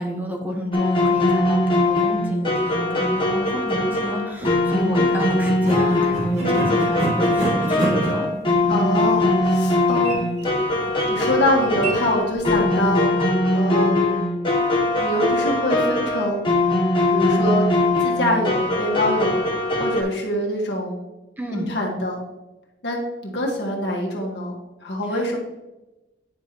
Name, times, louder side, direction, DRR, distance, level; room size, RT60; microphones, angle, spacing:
voice 1, 0.0-8.3 21.4-21.8 25.1-25.4, equal, 10° right, 2 dB, 1.0 m, -29 dB
sound 1, 0.7-20.0, left 2 dB, 30° left, 1.4 m, -21 dB
sound 2, 4.3-4.6 5.4-12.9, right 1 dB, 40° right, 2.3 m, -29 dB
voice 2, 6.4-6.7 8.7-10.3 11.1-13.1 13.5-14.2 15.0-16.4 17.1-17.7 18.0-19.4 19.8-21.0 21.5-22.2 22.8-24.6 24.8-25.4, left 1 dB, 75° left, -1 dB, 1.7 m, -24 dB
9.4 x 5.7 x 3.0 m, 0.99 s
head